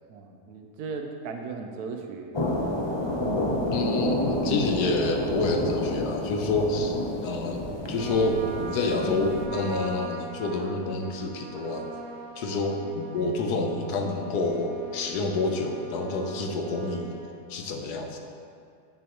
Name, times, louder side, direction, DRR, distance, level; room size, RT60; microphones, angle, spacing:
voice 1, 0.1-2.4, right 4 dB, 75° right, 4 dB, 1.2 m, -37 dB
sound 1, 2.3-9.5, left 1 dB, 45° left, 0.3 m, -29 dB
voice 2, 3.7-7.0 7.2-7.6 7.9-11.9 12.4-17.1 17.5-18.2, left 2 dB, 75° left, 3 dB, 1.3 m, -28 dB
Trumpet, 7.9-17.3, right 1 dB, 45° right, 0.9 m, -41 dB
9.9 x 6.2 x 3.0 m, 2.3 s
omnidirectional pair, 1.7 m